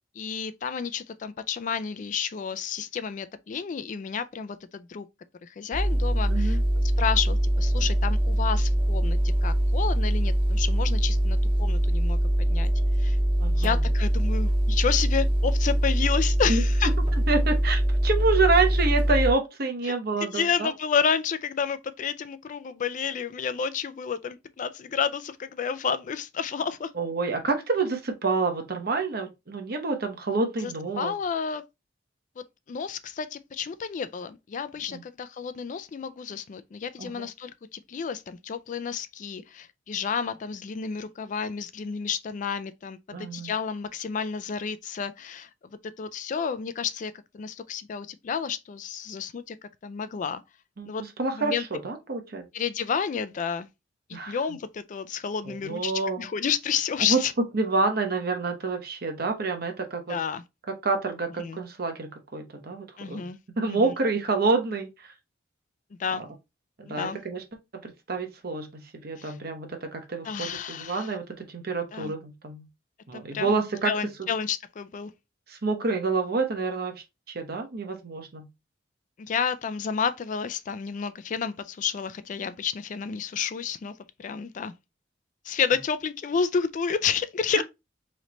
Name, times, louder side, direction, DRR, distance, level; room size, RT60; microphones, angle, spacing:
voice 1, 0.2-5.1 5.4-12.7 13.0-13.2 13.5-16.9 19.9-20.0 20.2-26.9 30.6-31.6 32.4-45.5 46.0-50.4 50.8-51.0 51.3-51.8 52.5-53.7 54.1-57.3 60.1-60.4 61.4-61.6 63.0-63.4 63.7-63.9 66.0-66.2 66.9-67.2 69.2-69.4 70.2-71.1 71.9-72.1 73.1-73.6 73.8-75.1 79.2-84.7 85.4-87.6, left 6 dB, 45° left, 0.3 m, -30 dB
sound 1, 5.7-19.3, right 1 dB, 30° right, 0.9 m, -23 dB
voice 2, 6.3-6.6 13.4-13.8 16.5-16.6 17.3-20.7 27.0-31.1 34.9-35.0 37.0-37.2 43.1-43.5 50.8-50.9 51.2-52.4 54.1-54.4 55.5-56.3 57.1-57.2 57.5-60.2 60.8-63.3 63.6-64.9 66.8-67.4 67.8-72.7 73.1-74.0 75.5-76.9 77.3-78.5, right 3 dB, 55° right, 0.9 m, -28 dB
3.8 x 3.2 x 3.0 m
head